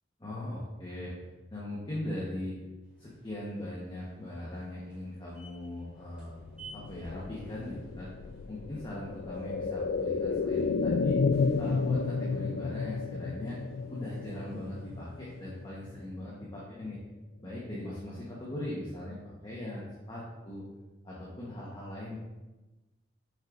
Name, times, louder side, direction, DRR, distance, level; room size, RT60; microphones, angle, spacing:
voice 1, 0.2-1.1 1.5-2.5 3.0-6.3 6.7-8.1 8.5-11.2 11.6-13.6 13.9-17.0 17.4-20.7 21.0-22.2, left 1 dB, 25° left, -6 dB, 1.1 m, -39 dB
sound 1, 2.8-16.3, right 3 dB, 5° right, 2.0 m, -58 dB
sound 2, 6.3-16.1 16.4-16.5, left 4 dB, 60° left, 0.3 m, -32 dB
7.0 x 6.3 x 2.5 m, 1.1 s
head